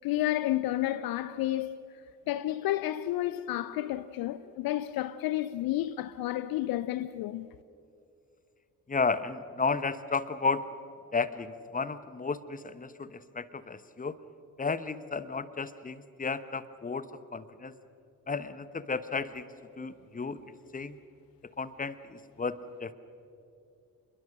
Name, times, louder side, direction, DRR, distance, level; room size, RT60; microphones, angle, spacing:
voice 1, 0.0-1.8 2.3-7.5, left 14 dB, 55° left, 0.6 m, -31 dB
voice 2, 8.9-10.7 11.1-14.2 14.6-17.1 17.3-17.7 18.3-19.5 19.8-20.4 20.7-21.0 21.6-22.9, left 4 dB, 20° left, 1.1 m, -33 dB
27.0 x 21.5 x 6.5 m
figure-of-eight pair, 40°, 43 cm